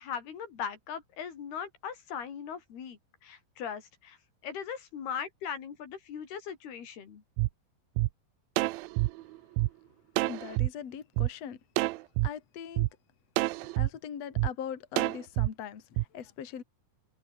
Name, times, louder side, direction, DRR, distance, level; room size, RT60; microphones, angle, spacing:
voice 1, 0.0-4.2 4.4-7.2, left 7 dB, 80° left, 5.4 m, -39 dB
sound 1, 7.4-7.5 8.0-8.1 8.6-9.7 10.2-10.7 11.2-11.3 11.8-12.3 12.8-12.9 13.4-13.9 14.4-14.5 15.0-15.5 16.0-16.1, right 20 dB, 80° right, 2.3 m, -27 dB
voice 2, 10.3-11.6 12.2-12.9 13.8-16.6, left 8 dB, 45° left, 3.2 m, -40 dB
omnidirectional pair, 4.4 m